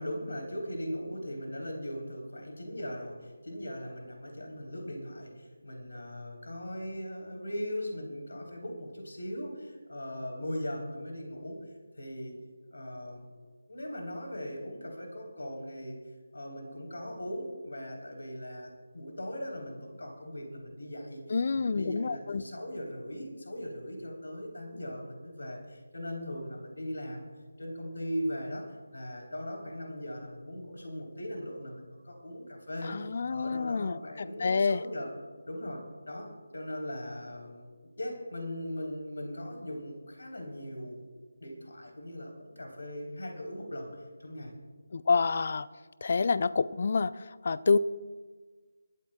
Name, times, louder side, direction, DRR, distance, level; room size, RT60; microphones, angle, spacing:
voice 1, 0.0-11.6 11.9-12.4 12.7-13.3 13.7-16.0 16.3-27.3 27.6-35.1 35.5-41.1 41.4-43.9 44.2-44.5, equal, 65° left, 2 dB, 3.4 m, -39 dB
voice 2, 21.3-22.4 32.8-34.8 44.9-45.7 46.0-47.8, left 4 dB, 45° left, 17 dB, 0.5 m, -28 dB
25.5 x 12.5 x 2.3 m, 1.5 s
figure-of-eight pair, 155°, 0 cm